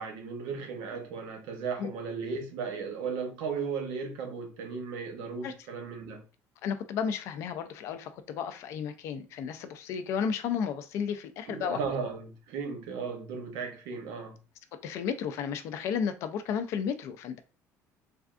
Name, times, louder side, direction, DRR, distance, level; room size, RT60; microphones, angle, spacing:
voice 1, 0.0-6.2 11.5-14.4, right 5 dB, 90° right, 0.8 m, -36 dB
voice 2, 6.6-11.8 14.7-17.4, left 7 dB, 50° left, 0.3 m, -33 dB
3.4 x 2.3 x 2.4 m
cardioid pair, 180°, 6 cm